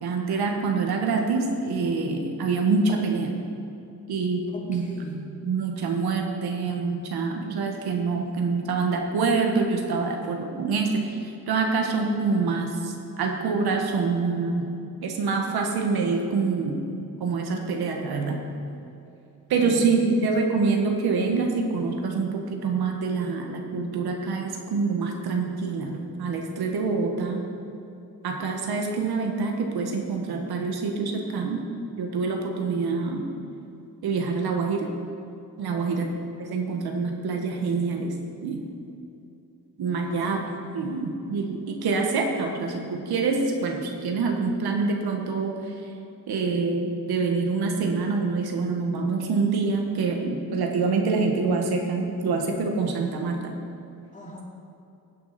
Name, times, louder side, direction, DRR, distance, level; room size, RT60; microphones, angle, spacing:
voice 1, 0.0-3.3 4.1-4.9 5.4-14.7 15.0-16.8 17.2-18.4 19.5-27.5 28.2-31.6 32.0-33.2 34.0-34.9 35.6-36.1 36.4-38.1 38.4-38.6 39.8-40.4 40.7-45.5 46.3-53.6, right 4 dB, 85° right, 2 dB, 1.7 m, -26 dB
voice 2, 4.5-5.2 19.5-20.2 35.7-36.2 40.0-41.2 54.1-54.4, equal, 20° left, -2 dB, 2.4 m, -40 dB
16.0 x 9.5 x 4.4 m, 2.7 s
cardioid pair, 100°, 37 cm